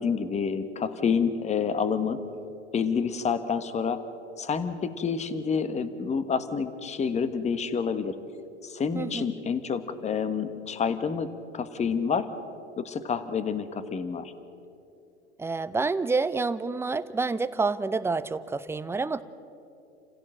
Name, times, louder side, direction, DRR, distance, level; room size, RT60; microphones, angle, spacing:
voice 1, 0.0-2.2 2.7-4.0 4.4-8.1 8.6-11.3 11.5-12.3 12.8-14.3, left 6 dB, 20° left, 11 dB, 1.4 m, -28 dB
voice 2, 8.9-9.3 15.4-19.2, right 4 dB, 5° right, 13 dB, 0.7 m, -28 dB
28.5 x 16.0 x 7.7 m, 2.8 s
hypercardioid pair, 95°, 34 cm